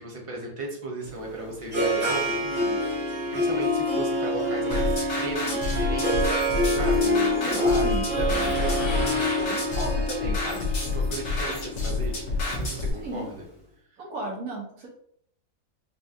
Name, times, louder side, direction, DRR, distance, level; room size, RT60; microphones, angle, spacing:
voice 1, 0.0-6.4 6.7-13.4, right 1 dB, 30° right, 0 dB, 0.7 m, -36 dB
Harp, 1.0-13.2, left 1 dB, 60° right, 1.4 m, -27 dB
sound 1, 4.7-12.9, left 3 dB, 65° left, 1.3 m, -29 dB
voice 2, 7.1-8.1 13.0-13.3 14.0-14.9, right 2 dB, 80° right, -3 dB, 1.7 m, -35 dB
sound 2, 8.3-10.1, left 2 dB, 90° left, 2.0 m, -34 dB
5.3 x 2.4 x 2.7 m, 0.67 s
omnidirectional pair, 1.5 m